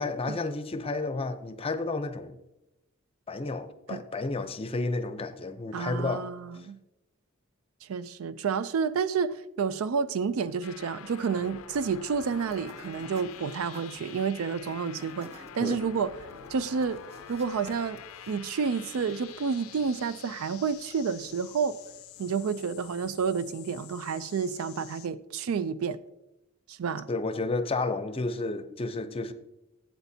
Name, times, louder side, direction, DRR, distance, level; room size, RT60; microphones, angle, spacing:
voice 1, 0.0-2.4 3.3-6.3 15.6-15.8 27.1-29.3, left 3 dB, 25° left, 0.5 m, -31 dB
voice 2, 5.7-6.8 7.8-16.1 16.5-17.0 17.3-21.8 22.2-26.0 26.7-27.1, right 5 dB, 80° right, 0.4 m, -30 dB
sound 1, 10.6-25.1, left 9 dB, 85° left, 0.5 m, -47 dB
sound 2, 12.2-24.1, right 2 dB, 30° right, 0.8 m, -55 dB
12.5 x 8.0 x 2.7 m
head